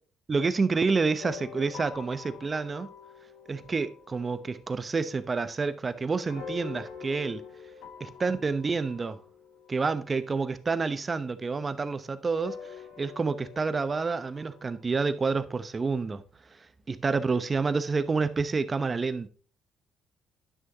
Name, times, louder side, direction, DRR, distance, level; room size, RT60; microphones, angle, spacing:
voice 1, 0.3-2.9 3.5-7.4 8.0-9.2 9.7-12.6 13.0-16.2 16.9-19.3, right 4 dB, 30° right, 0.8 m, -28 dB
sound 1, 1.2-11.3 12.4-14.8, left 6 dB, 80° left, 1.7 m, -46 dB
11.0 x 6.2 x 2.8 m
cardioid pair, 90°, 0 cm